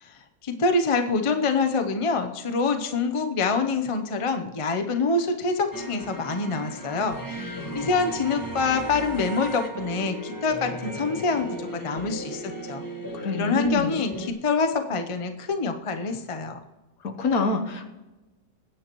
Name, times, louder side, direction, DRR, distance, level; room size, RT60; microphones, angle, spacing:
voice 1, 0.0-12.8 13.3-16.6, left 4 dB, 40° left, 6 dB, 0.4 m, -26 dB
sound 1, 5.7-14.3, right 1 dB, 15° left, 1.1 m, -36 dB
voice 2, 13.1-13.9 17.0-17.8, left 3 dB, 60° left, 5 dB, 1.4 m, -26 dB
20.5 x 9.7 x 3.1 m, 1.1 s
omnidirectional pair, 1.8 m